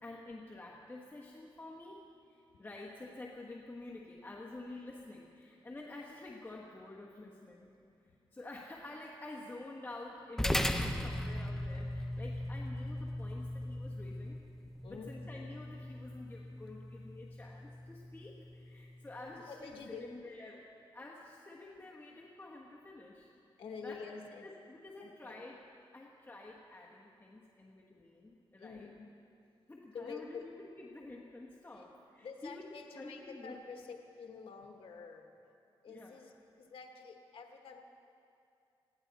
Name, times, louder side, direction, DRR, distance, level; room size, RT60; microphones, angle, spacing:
voice 1, 0.0-2.0 2.3-7.8 8.3-14.4 14.8-19.7 20.0-23.3 23.8-24.1 24.4-25.6 25.9-28.9 29.7-33.6 35.9-36.2, left 2 dB, 20° left, -3 dB, 1.4 m, -49 dB
sound 1, 10.4-19.0, left 1 dB, 5° left, 0.8 m, -38 dB
voice 2, 19.5-20.1 23.6-24.4 25.0-25.5 28.6-29.1 29.9-30.4 31.7-31.8 32.2-35.3 35.8-37.8, left 5 dB, 75° left, 3 dB, 1.1 m, -48 dB
21.0 x 15.5 x 4.1 m, 2.6 s
cardioid pair, 90°, 9 cm